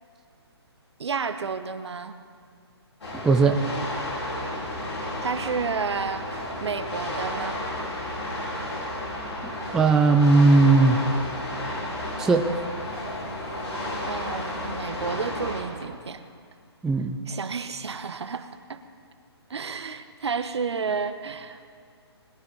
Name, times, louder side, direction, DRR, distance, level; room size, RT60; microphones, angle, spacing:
voice 1, 1.0-2.2 5.2-7.6 14.1-16.2 17.3-18.8 19.5-21.6, right 5 dB, 75° right, 10 dB, 1.0 m, -31 dB
sound 1, 3.0-15.6, left 1 dB, 80° left, 4.3 m, -32 dB
voice 2, 3.2-3.6 9.7-11.0 12.2-12.5 16.8-17.2, right 3 dB, 5° right, 4 dB, 0.3 m, -18 dB
21.0 x 10.5 x 4.1 m, 2.3 s
hypercardioid pair, 150°, 14 cm